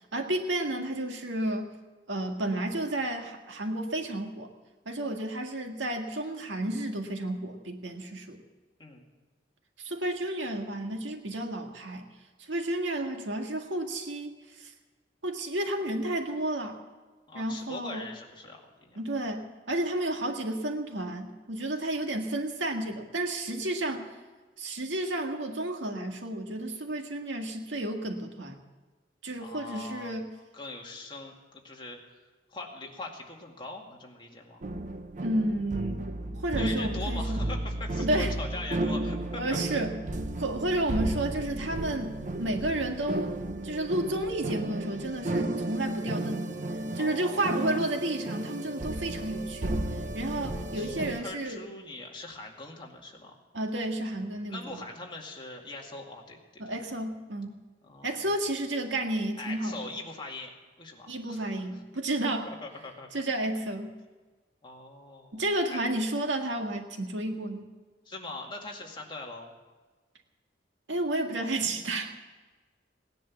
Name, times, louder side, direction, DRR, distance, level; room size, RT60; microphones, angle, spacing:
voice 1, 0.1-1.7 2.1-4.5 4.9-8.4 9.8-12.1 12.5-14.7 15.2-16.8 17.3-18.1 19.0-24.1 24.6-28.6 29.2-30.3 35.2-36.0 36.4-37.4 38.0-38.3 39.4-39.9 40.4-43.4 43.6-46.5 47.0-49.8 50.1-51.6 53.5-54.8 56.6-57.6 58.0-59.9 61.1-62.5 63.1-63.9 65.3-67.7 70.9-72.1, right 1 dB, 85° right, 4 dB, 1.8 m, -31 dB
voice 2, 17.3-19.0 29.4-30.1 30.5-32.0 32.5-34.6 36.6-39.4 47.0-47.9 50.7-53.3 54.5-56.7 57.8-58.3 59.4-61.5 62.5-63.2 64.6-65.4 65.7-65.8 68.1-69.5, left 2 dB, 25° left, 0 dB, 2.2 m, -42 dB
sound 1, 34.6-51.2, right 1 dB, 45° right, 0.8 m, -33 dB
18.0 x 10.5 x 7.2 m, 1.3 s
head